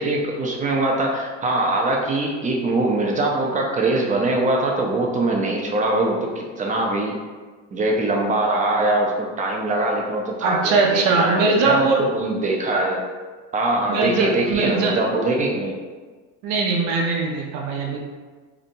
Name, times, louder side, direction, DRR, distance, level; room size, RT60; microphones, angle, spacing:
voice 1, 0.0-7.1 7.7-13.0 13.5-15.7, right 2 dB, 20° right, -1 dB, 0.4 m, -22 dB
voice 2, 10.4-12.1 13.9-15.0 16.4-18.0, right 3 dB, 80° right, 0 dB, 0.5 m, -21 dB
2.8 x 2.1 x 2.6 m, 1.4 s
supercardioid pair, 95°, 38 cm